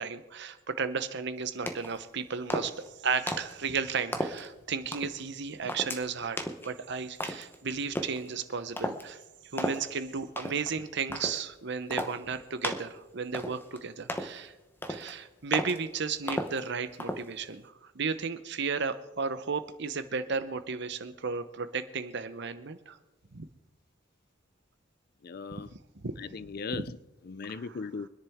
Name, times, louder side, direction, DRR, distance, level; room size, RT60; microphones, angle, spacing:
voice 1, 0.0-6.4 6.6-9.2 9.5-14.5 14.9-23.0 23.3-23.5 25.9-26.2 26.7-26.8 27.5-27.6, right 5 dB, 60° right, 0.9 m, -34 dB
sound 1, 1.7-2.0 2.5-2.9 3.3-3.6 4.1-4.5 4.9-5.2 5.7-6.0 6.4-6.7 7.2-7.5 7.9-8.2 8.8-9.0 9.6-9.8 10.4-10.7 11.1-11.4 11.9-12.2 12.6-12.9 13.3-13.8 14.1-14.4 14.8-15.1 15.5-15.8 16.3-16.6 17.0-17.3, left 1 dB, 10° left, 0.8 m, -34 dB
voice 2, 25.2-25.7 26.2-27.0 27.2-28.1, left 4 dB, 50° left, 0.4 m, -38 dB
25.0 x 10.0 x 3.6 m
head